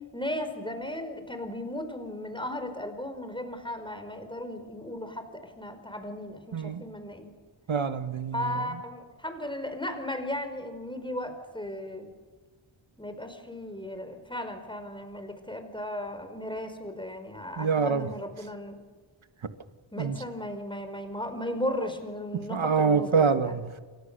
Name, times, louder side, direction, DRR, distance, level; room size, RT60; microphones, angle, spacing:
voice 1, 0.1-7.3 8.3-12.1 13.0-18.8 19.9-23.6, left 1 dB, 10° left, 7 dB, 4.8 m, -36 dB
voice 2, 6.5-6.8 7.7-8.7 17.6-18.1 20.0-20.2 22.5-23.8, right 5 dB, 80° right, 9 dB, 1.9 m, -26 dB
29.5 x 25.0 x 6.9 m, 1.4 s
wide cardioid pair, 90°, 47 cm